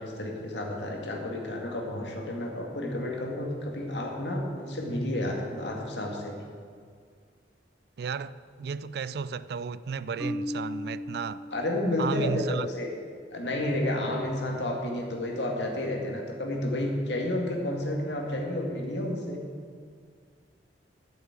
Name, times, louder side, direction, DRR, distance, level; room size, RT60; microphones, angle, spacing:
voice 1, 0.0-6.4 11.5-12.9 13.3-19.4, left 1 dB, 75° left, 2.0 m, -31 dB
voice 2, 8.0-11.4 12.0-12.7, right 5 dB, 60° right, 0.3 m, -33 dB
Marimba xylophone, 10.2-12.2, left 1 dB, ahead, 0.5 m, -36 dB
8.9 x 7.3 x 8.9 m
head